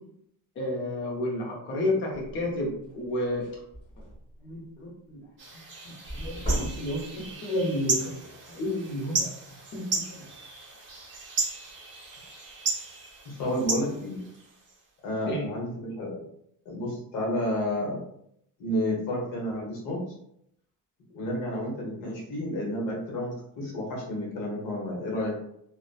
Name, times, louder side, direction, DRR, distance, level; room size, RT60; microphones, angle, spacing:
voice 1, 0.6-3.4 4.4-5.2 5.8-8.0 8.5-9.2 9.7-10.2 15.3-15.5, left 1 dB, 30° left, -2 dB, 0.6 m, -31 dB
sound 1, 2.1-2.4 2.9-3.0 3.3-4.4 6.1-7.3, equal, 15° left, 1.0 m, -33 dB
sound 2, 5.4-14.8, right 3 dB, 30° right, 0.6 m, -34 dB
voice 2, 13.2-14.2 15.0-16.2 16.6-18.0 18.6-20.0 21.1-25.3, left 1 dB, 55° left, -2 dB, 1.0 m, -31 dB
2.7 x 2.1 x 2.3 m, 0.74 s
cardioid pair, 180°, 39 cm